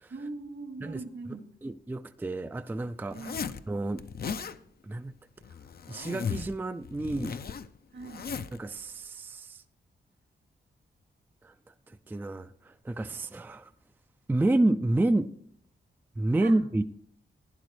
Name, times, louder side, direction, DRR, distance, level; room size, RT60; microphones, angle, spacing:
voice 1, 0.1-1.6 3.1-3.5 7.9-8.3 16.4-16.6, right 3 dB, 75° right, 4 dB, 2.4 m, -41 dB
voice 2, 1.6-3.3 3.7-4.0 4.8-5.1 5.9-7.4 8.5-9.6 11.4-11.5 12.1-13.7 14.3-15.3 16.2-16.8, right 2 dB, 10° right, 9 dB, 0.4 m, -29 dB
Zipper (clothing), 3.1-3.6 4.0-4.6 5.4-6.5 6.8-8.6, left 6 dB, 50° left, 0.5 m, -36 dB
16.0 x 10.5 x 3.2 m, 0.64 s
wide cardioid pair, 100°, 20 cm